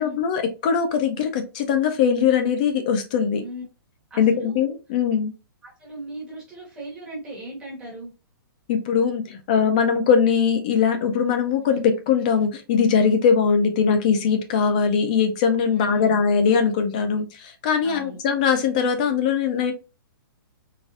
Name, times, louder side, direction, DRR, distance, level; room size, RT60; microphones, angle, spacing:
voice 1, 0.0-3.4 4.2-5.3 8.7-19.7, left 6 dB, 20° left, 7 dB, 0.3 m, -21 dB
voice 2, 4.1-4.7 5.6-8.1 11.7-12.0 15.7-16.2 17.8-18.2, right 1 dB, 10° right, -5 dB, 1.3 m, -38 dB
4.0 x 2.3 x 2.4 m, 0.30 s
hypercardioid pair, 175°, 12 cm